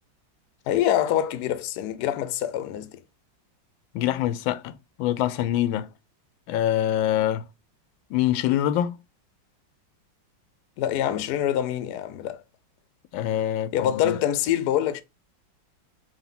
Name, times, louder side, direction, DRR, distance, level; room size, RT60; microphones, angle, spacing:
voice 1, 0.7-3.0 10.8-12.4 13.7-15.0, left 11 dB, 70° left, 1.0 m, -25 dB
voice 2, 3.9-5.9 6.5-7.4 8.1-9.0 13.1-14.2, left 12 dB, 90° left, 1.4 m, -25 dB
4.9 x 2.7 x 3.7 m
omnidirectional pair, 2.1 m